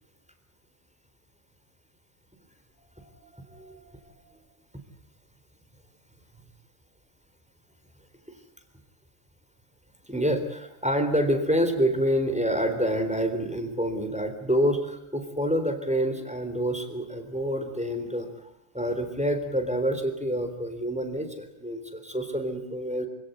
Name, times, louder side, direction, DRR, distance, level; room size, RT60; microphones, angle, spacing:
voice 1, 2.8-4.1 10.0-18.3 18.7-23.1, equal, 5° right, 6 dB, 4.0 m, -27 dB
27.0 x 17.5 x 9.5 m, 0.83 s
omnidirectional pair, 1.5 m